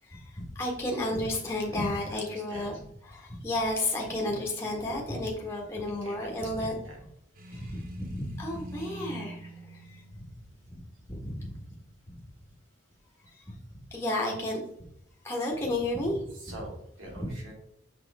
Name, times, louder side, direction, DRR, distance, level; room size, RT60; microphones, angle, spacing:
voice 1, 0.0-6.7 7.5-10.0 10.6-10.8 11.1-11.6 12.1-12.2 13.2-13.6 13.9-14.6 15.2-16.3, left 1 dB, 10° left, -2 dB, 1.4 m, -32 dB
voice 2, 2.0-2.8 6.0-6.9 16.4-17.5, right 1 dB, 70° right, -1 dB, 2.5 m, -45 dB
sound 1, 7.3-11.3, right 1 dB, 45° right, 0.9 m, -44 dB
6.2 x 5.6 x 3.5 m, 0.72 s
head